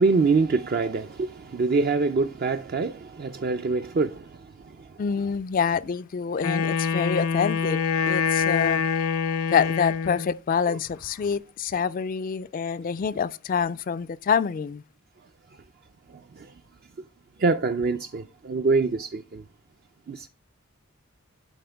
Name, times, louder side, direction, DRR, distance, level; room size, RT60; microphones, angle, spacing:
voice 1, 0.0-4.4 4.8-4.9 16.4-16.5 17.4-19.4 20.1-20.3, right 4 dB, 45° right, 0.4 m, -25 dB
voice 2, 5.0-7.8 8.1-8.8 9.5-14.8, left 6 dB, 40° left, 0.3 m, -26 dB
Wind instrument woodwind instrument, 6.4-10.4, left 6 dB, 80° left, 0.7 m, -25 dB
11.5 x 4.3 x 3.4 m
head